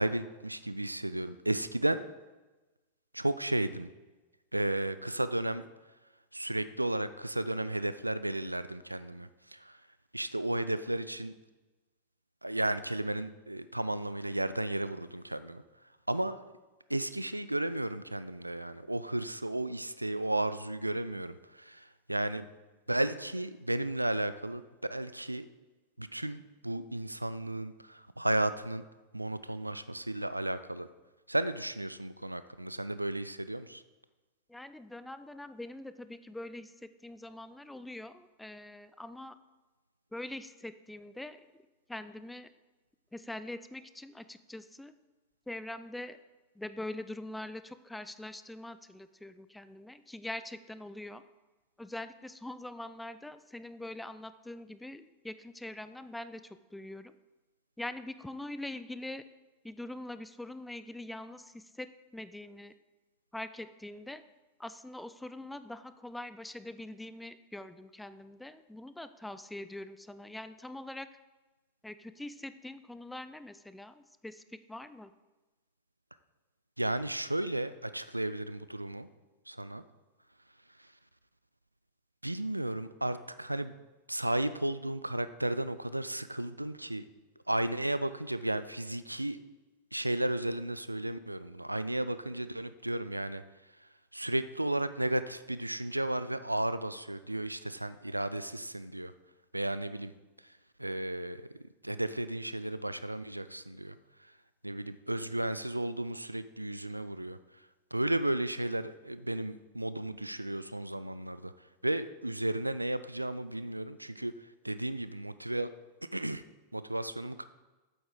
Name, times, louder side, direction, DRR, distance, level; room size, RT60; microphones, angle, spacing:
voice 1, 0.0-2.0 3.1-3.9 4.5-5.7 6.3-9.8 10.1-11.3 12.4-15.6 16.1-16.4 16.9-22.5 22.9-24.6 24.9-25.5 26.0-28.8 29.1-30.9 31.3-33.8 76.8-79.1 79.5-79.8 82.2-83.7 84.1-87.0 87.5-89.4 89.9-93.4 94.1-99.1 99.5-100.1 100.8-101.4 101.8-103.9 104.6-107.4 107.9-111.5 111.8-114.3 114.6-115.7 116.1-116.4 116.7-117.4, right 1 dB, 85° right, 14 dB, 0.3 m, -33 dB
voice 2, 34.5-39.4 40.1-41.4 41.9-42.5 43.1-44.9 45.5-46.2 46.6-51.2 51.8-57.1 57.8-59.2 59.6-62.7 63.3-64.2 64.6-71.1 71.8-75.1, left 1 dB, 5° left, 12 dB, 0.4 m, -43 dB
8.0 x 7.9 x 3.8 m, 1.1 s
figure-of-eight pair, 90°, 0 cm